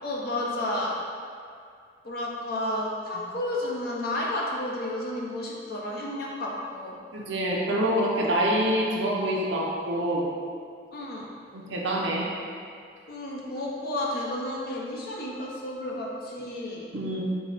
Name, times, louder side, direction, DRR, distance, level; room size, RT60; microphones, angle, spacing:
voice 1, 0.0-1.0 2.0-7.0 10.9-11.3 13.1-16.9, left 1 dB, 55° left, -3 dB, 0.6 m, -31 dB
voice 2, 7.1-10.3 11.5-12.3 16.9-17.2, right 1 dB, 85° right, -3 dB, 0.7 m, -26 dB
4.6 x 2.1 x 4.0 m, 2.3 s
head